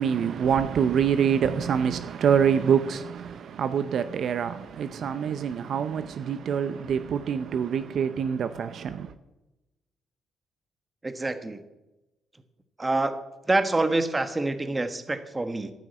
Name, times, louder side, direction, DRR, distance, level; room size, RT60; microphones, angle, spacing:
voice 1, 0.0-9.1, right 7 dB, 65° right, 0.7 m, -25 dB
voice 2, 11.0-11.6 12.8-13.1 13.5-15.7, right 2 dB, 20° right, 1.3 m, -26 dB
13.5 x 6.1 x 8.3 m
cardioid pair, 90°, 0 cm